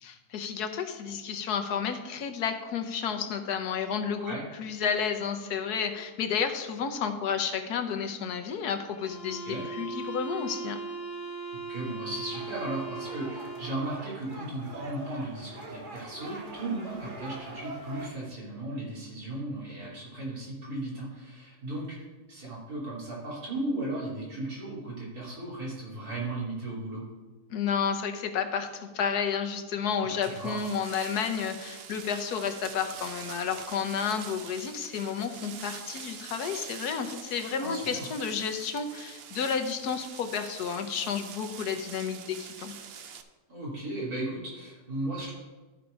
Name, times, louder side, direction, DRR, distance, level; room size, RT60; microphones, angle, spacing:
voice 1, 0.0-10.8 27.5-42.7, left 7 dB, 85° left, 6 dB, 1.4 m, -31 dB
sound 1, 8.9-13.9, right 3 dB, 25° left, 1.2 m, -38 dB
voice 2, 11.7-22.0 22.3-27.0 30.0-30.6 37.6-38.1 43.5-45.3, right 1 dB, 75° right, -6 dB, 3.6 m, -36 dB
sound 2, 12.3-18.1, right 2 dB, 35° right, 1.3 m, -43 dB
sound 3, 30.2-43.2, right 7 dB, 60° right, 0.7 m, -45 dB
13.0 x 4.7 x 5.1 m, 1.2 s
omnidirectional pair, 1.6 m